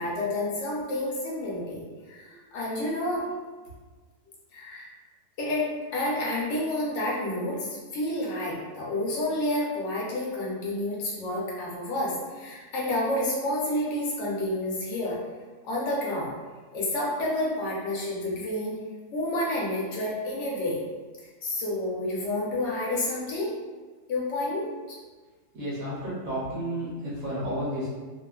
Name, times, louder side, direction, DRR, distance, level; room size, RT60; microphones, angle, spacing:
voice 1, 0.0-1.8 2.1-3.3 4.5-4.9 5.4-15.2 15.6-16.3 16.7-18.8 19.1-20.8 21.4-23.5 24.1-25.0, left 1 dB, 60° left, -5 dB, 0.8 m, -29 dB
voice 2, 25.5-27.9, equal, 60° right, -8 dB, 1.1 m, -32 dB
2.8 x 2.1 x 2.3 m, 1.4 s
omnidirectional pair, 1.8 m